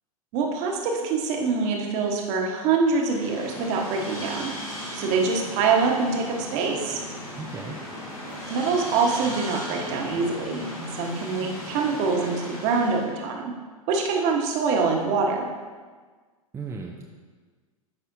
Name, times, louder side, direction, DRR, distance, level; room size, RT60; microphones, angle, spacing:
voice 1, 0.3-4.5 4.9-7.0 8.5-13.5 13.9-15.5, right 4 dB, 40° right, 1 dB, 1.3 m, -25 dB
sound 1, 3.0-13.1, equal, 80° left, 2.5 m, -37 dB
voice 2, 7.4-7.8 16.5-17.1, right 4 dB, 15° right, 0 dB, 0.6 m, -35 dB
13.5 x 5.5 x 2.7 m, 1.5 s
figure-of-eight pair, 90°, 19 cm